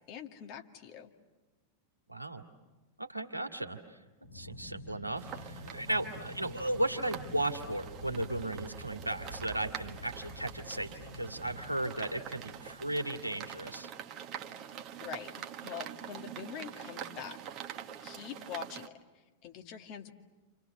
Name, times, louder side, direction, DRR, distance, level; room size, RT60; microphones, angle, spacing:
voice 1, 0.1-1.1 15.0-20.1, left 8 dB, 40° left, 4 dB, 2.1 m, -45 dB
voice 2, 2.1-2.4 3.0-4.0 4.3-13.9, right 1 dB, 85° right, 4 dB, 2.0 m, -35 dB
Aircraft, 4.2-13.7, left 1 dB, 80° left, 3.8 m, -48 dB
sound 1, 5.2-18.9, right 9 dB, 35° right, 1.5 m, -45 dB
29.0 x 28.5 x 6.9 m, 1.2 s
figure-of-eight pair, 90°, 0 cm